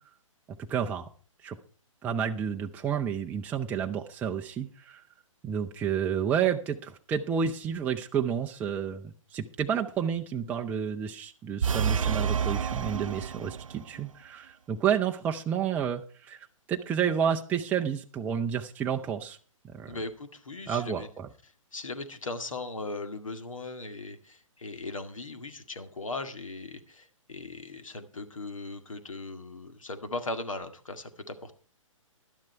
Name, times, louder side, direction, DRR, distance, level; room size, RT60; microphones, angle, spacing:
voice 1, 0.7-1.1 1.4-1.6 2.0-5.0 5.4-19.4 19.7-20.0 20.7-21.3, right 8 dB, 10° right, 3 dB, 0.5 m, -30 dB
sound 1, 11.6-13.9, right 7 dB, 75° right, 0.5 m, -29 dB
voice 2, 19.9-21.1 21.7-31.5, left 2 dB, 70° left, 9 dB, 2.1 m, -38 dB
12.0 x 10.5 x 4.4 m, 0.42 s
figure-of-eight pair, 130°, 17 cm